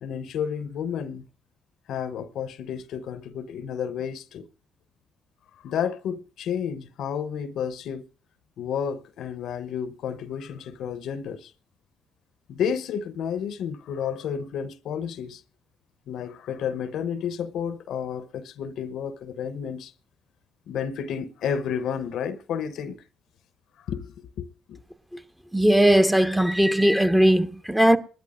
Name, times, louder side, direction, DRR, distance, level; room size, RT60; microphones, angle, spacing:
voice 1, 0.0-1.3 1.9-4.5 5.6-8.0 8.6-11.5 12.5-15.4 16.1-19.9 20.7-23.0 23.8-24.8, left 8 dB, 70° left, 0.8 m, -31 dB
voice 2, 25.5-28.0, right 1 dB, 5° right, 1.1 m, -19 dB
20.5 x 13.0 x 2.5 m
supercardioid pair, 55°, 0 cm